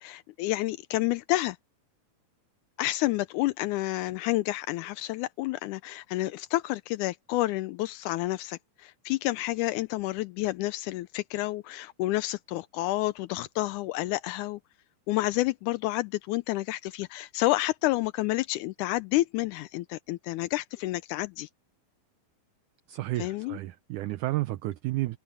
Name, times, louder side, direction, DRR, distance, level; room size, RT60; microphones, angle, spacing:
voice 1, 0.0-1.6 2.8-14.6 15.1-21.5 23.2-23.6, left 18 dB, 80° left, 1.8 m, -29 dB
voice 2, 22.9-25.2, right 18 dB, 75° right, 1.9 m, -31 dB
omnidirectional pair, 4.0 m